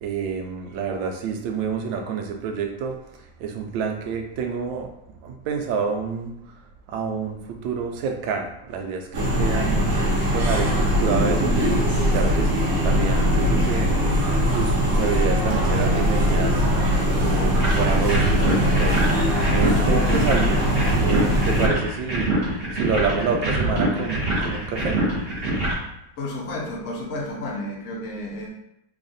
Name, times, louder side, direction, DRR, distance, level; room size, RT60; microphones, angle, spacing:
voice 1, 0.0-4.9 5.2-6.3 6.9-9.9 10.3-11.6 12.0-14.0 14.5-16.7 17.2-20.7 21.0-25.0, right 5 dB, 75° right, 4 dB, 1.2 m, -28 dB
sound 1, 9.1-21.7, equal, 55° right, 1.2 m, -21 dB
sound 2, 17.6-25.7, right 1 dB, 35° right, 1.1 m, -25 dB
voice 2, 26.2-28.5, left 1 dB, 60° left, -1 dB, 0.9 m, -31 dB
3.4 x 2.4 x 3.9 m, 0.80 s
omnidirectional pair, 2.2 m